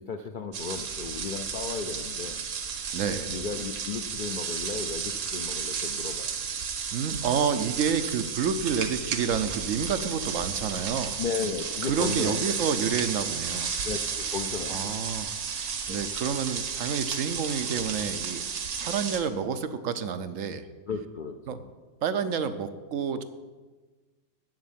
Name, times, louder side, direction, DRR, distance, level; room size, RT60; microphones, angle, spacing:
voice 1, 0.0-2.4 3.3-6.3 11.2-12.6 13.8-15.0 15.9-16.1 20.9-21.7, left 5 dB, 65° left, 6 dB, 0.5 m, -35 dB
sound 1, 0.5-19.2, right 6 dB, 90° right, 1.5 m, -33 dB
voice 2, 2.9-3.3 6.9-11.2 11.8-13.7 14.7-18.4 18.8-20.7 21.5-21.6 22.0-23.2, right 7 dB, 70° right, 10 dB, 1.0 m, -29 dB
8.3 x 7.7 x 7.3 m, 1.3 s
omnidirectional pair, 1.5 m